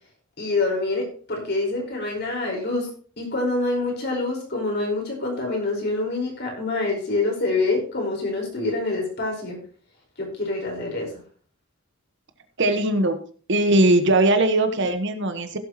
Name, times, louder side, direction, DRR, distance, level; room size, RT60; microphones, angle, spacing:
voice 1, 0.4-2.9 3.2-9.6 10.2-11.1, left 2 dB, 55° left, 0 dB, 4.9 m, -26 dB
voice 2, 12.6-13.2 13.5-15.6, right 2 dB, 60° right, 8 dB, 1.3 m, -20 dB
16.5 x 8.1 x 3.0 m, 0.42 s
head